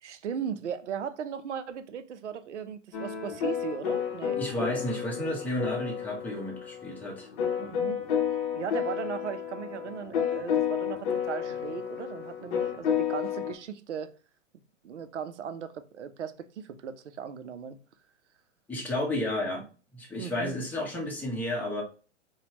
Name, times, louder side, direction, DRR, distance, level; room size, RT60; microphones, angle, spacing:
voice 1, 0.0-4.4 7.6-8.0 8.5-14.1 14.8-17.8 20.2-20.5, right 8 dB, 65° right, 0.6 m, -37 dB
sound 1, 2.9-13.5, left 8 dB, 40° left, 0.8 m, -31 dB
voice 2, 4.4-7.3 18.7-19.6 19.9-21.8, left 1 dB, 5° left, 0.9 m, -32 dB
4.1 x 2.3 x 2.9 m
figure-of-eight pair, 115°, 38 cm